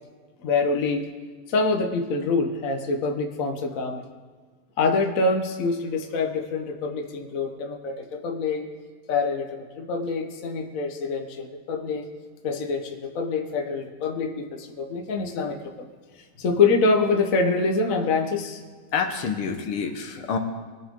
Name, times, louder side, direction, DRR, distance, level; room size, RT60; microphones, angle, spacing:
voice 1, 0.4-1.0 1.5-4.0 4.8-8.7 9.1-12.1 12.4-15.9 16.4-18.6, left 4 dB, 45° left, 3 dB, 1.4 m, -25 dB
voice 2, 18.9-20.4, left 6 dB, 80° left, 5 dB, 2.1 m, -27 dB
23.0 x 10.5 x 3.8 m, 1.5 s
omnidirectional pair, 2.4 m